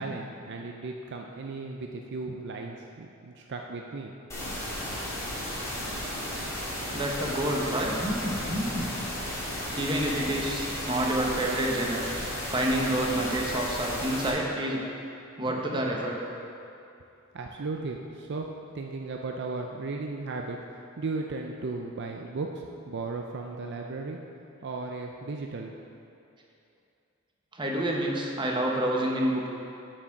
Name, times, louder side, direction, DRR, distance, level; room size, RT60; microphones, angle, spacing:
voice 1, 0.0-4.1 17.3-18.5 18.7-24.2 24.6-25.7, right 3 dB, 55° right, 2 dB, 0.5 m, -36 dB
sound 1, 4.3-14.3, left 1 dB, 15° left, 1.9 m, -34 dB
voice 2, 6.9-8.9 9.7-12.1 12.5-14.8 15.4-16.2 27.5-29.5, right 1 dB, 25° right, -1 dB, 1.1 m, -28 dB
8.1 x 6.2 x 5.8 m, 2.6 s
head